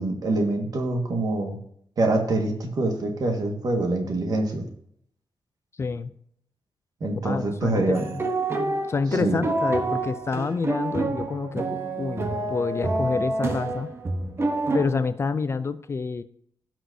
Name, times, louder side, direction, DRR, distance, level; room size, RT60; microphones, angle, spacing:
voice 1, 0.0-1.6 2.0-4.7 7.0-8.0 9.2-9.4, right 2 dB, 50° right, 3 dB, 1.6 m, -25 dB
voice 2, 5.8-6.1 7.2-8.0 8.9-13.9 14.7-16.2, left 4 dB, 30° left, 12 dB, 0.4 m, -28 dB
sound 1, 7.9-14.8, right 2 dB, 30° right, 0.9 m, -27 dB
16.0 x 6.0 x 2.7 m, 0.69 s
wide cardioid pair, 175°, 8 cm